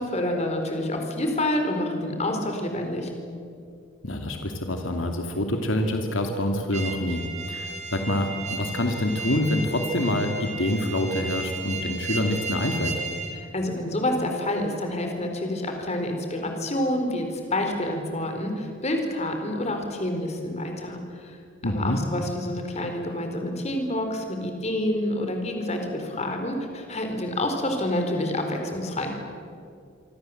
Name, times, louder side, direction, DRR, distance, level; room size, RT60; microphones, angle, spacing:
voice 1, 0.0-3.1 13.3-21.4 21.6-29.1, left 1 dB, 35° left, 4 dB, 4.1 m, -28 dB
voice 2, 4.0-12.9 21.6-22.0, left 1 dB, 75° left, 4 dB, 2.5 m, -26 dB
sound 1, 6.7-13.3, right 3 dB, 35° right, 3.1 m, -34 dB
27.0 x 24.0 x 7.8 m, 2.4 s
head